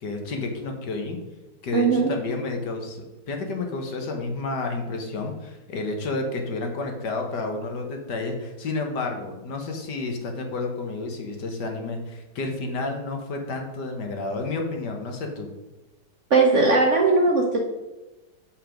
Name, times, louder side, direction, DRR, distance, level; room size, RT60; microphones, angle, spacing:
voice 1, 0.0-1.2 1.6-15.5, left 3 dB, 60° left, 3 dB, 1.6 m, -30 dB
voice 2, 1.7-2.1 16.3-17.6, right 3 dB, 50° right, 1 dB, 1.0 m, -19 dB
7.3 x 5.9 x 5.0 m, 1.1 s
omnidirectional pair, 2.2 m